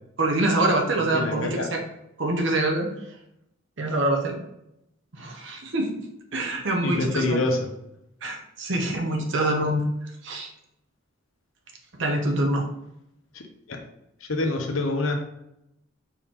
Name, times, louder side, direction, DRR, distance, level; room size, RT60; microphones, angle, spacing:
voice 1, 0.2-1.8 2.2-2.9 3.8-4.4 5.1-6.0 6.3-7.4 8.2-9.8 10.2-10.5 12.0-12.7, right 1 dB, 65° right, 1 dB, 0.9 m, -25 dB
voice 2, 1.1-1.7 6.8-7.6 13.3-13.4 13.7-13.8 14.3-15.1, left 2 dB, 85° left, 2 dB, 0.9 m, -25 dB
4.6 x 3.7 x 3.0 m, 0.81 s
head